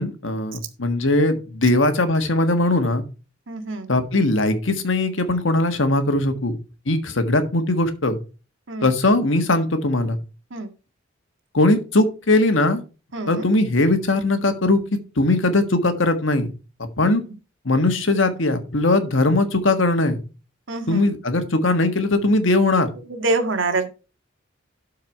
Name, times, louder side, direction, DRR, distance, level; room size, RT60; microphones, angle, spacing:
voice 1, 0.0-3.0 3.9-6.5 6.9-8.2 8.8-10.2 11.5-12.8 13.3-14.8 15.2-16.5 17.0-17.2 17.6-20.2 20.9-22.9, left 2 dB, 75° left, 8 dB, 1.5 m, -20 dB
voice 2, 3.5-3.9 8.7-8.9 10.5-10.7 13.1-13.4 17.0-17.2 20.7-21.1 23.1-23.9, right 2 dB, 75° right, 6 dB, 1.7 m, -26 dB
12.0 x 4.7 x 4.5 m, 0.32 s
head